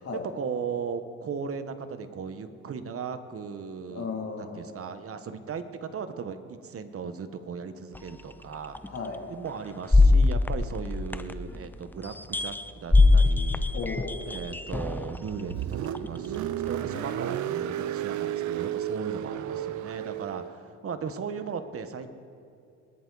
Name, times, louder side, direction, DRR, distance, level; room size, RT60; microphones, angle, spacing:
voice 1, 0.3-4.1 4.4-8.8 9.3-13.6 14.3-22.1, right 6 dB, 50° right, 9 dB, 1.2 m, -37 dB
voice 2, 3.9-4.9 8.9-9.2 13.7-14.2 16.9-17.1, left 4 dB, 55° left, 0 dB, 2.7 m, -35 dB
sound 1, 8.0-8.1 8.7-8.9 9.9-11.6 12.0-15.2 15.9-16.1, left 3 dB, 5° left, 0.5 m, -22 dB
Car, 15.1-20.6, right 11 dB, 70° right, 0.6 m, -32 dB
23.5 x 11.0 x 4.0 m, 2.5 s
cardioid pair, 90°, 30 cm